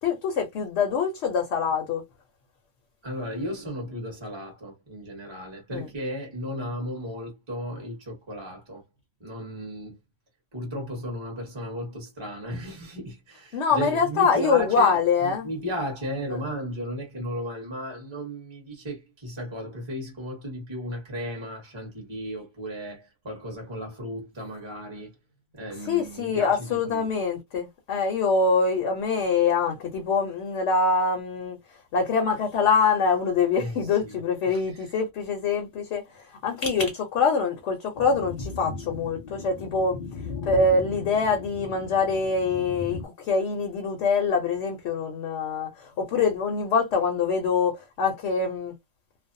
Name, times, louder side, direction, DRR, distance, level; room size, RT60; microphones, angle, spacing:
voice 1, 0.0-2.0 5.7-5.8 13.5-15.5 25.9-40.0 40.4-48.7, left 4 dB, 65° left, 0.9 m, -24 dB
voice 2, 3.0-8.8 9.2-10.0 10.5-25.1 25.5-27.1 33.6-34.9, equal, 25° right, 0.9 m, -35 dB
sound 1, 37.9-43.1, left 4 dB, 85° left, 0.4 m, -37 dB
2.5 x 2.0 x 2.5 m
omnidirectional pair, 1.5 m